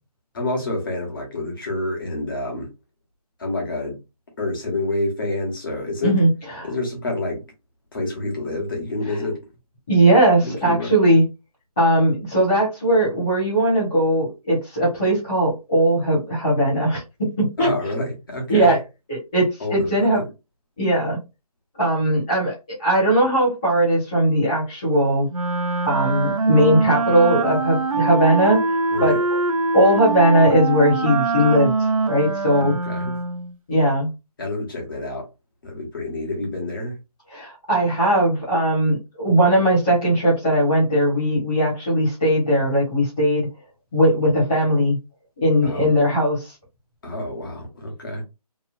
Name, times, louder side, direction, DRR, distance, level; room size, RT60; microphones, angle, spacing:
voice 1, 0.3-2.7 3.4-4.0 4.4-6.2 6.6-7.4 7.9-9.4 10.4-10.9 17.6-18.7 19.6-19.9 28.9-29.2 32.6-33.1 34.4-35.3 35.6-36.9 45.6-45.9 47.0-48.2, left 2 dB, 35° left, 1.1 m, -28 dB
voice 2, 9.9-11.2 11.8-17.0 17.4-17.7 18.5-18.8 19.1-20.2 20.8-21.2 21.8-25.3 25.8-29.2 29.7-32.7 33.7-34.1 37.3-43.5 43.9-45.0 45.4-46.5, right 1 dB, 5° left, 0.5 m, -19 dB
Wind instrument woodwind instrument, 25.3-33.5, right 4 dB, 60° right, 0.6 m, -23 dB
2.9 x 2.5 x 2.4 m
figure-of-eight pair, 170°, 20 cm